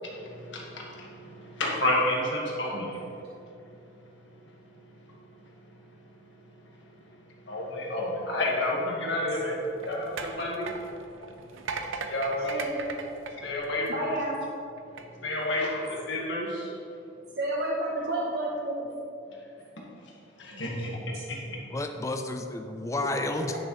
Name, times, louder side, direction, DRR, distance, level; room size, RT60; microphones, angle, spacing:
voice 1, 0.1-3.0 7.5-10.7 12.1-12.7 13.4-14.0 15.2-16.7 20.4-21.0 21.3-21.6, left 1 dB, 70° left, -2 dB, 1.5 m, -30 dB
sound 1, 9.3-14.2 14.8-15.0, right 4 dB, 90° right, 0.6 m, -38 dB
voice 2, 12.4-12.9 13.9-14.5 17.4-18.9 20.5-20.6 21.1-21.2, right 1 dB, 55° right, -4 dB, 0.8 m, -31 dB
voice 3, 21.7-23.6, left 2 dB, 15° left, 5 dB, 0.4 m, -31 dB
9.6 x 6.4 x 3.1 m, 2.7 s
head